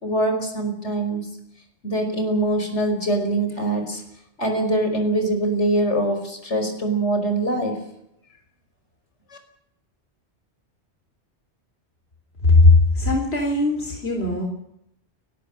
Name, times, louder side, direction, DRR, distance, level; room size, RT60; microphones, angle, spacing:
voice 1, 0.0-1.2 1.8-4.0 4.4-7.8, right 1 dB, 85° left, 5 dB, 5.5 m, -23 dB
voice 2, 12.5-14.4, left 3 dB, 65° left, 2 dB, 3.9 m, -17 dB
29.5 x 12.5 x 8.9 m, 0.78 s
omnidirectional pair, 1.2 m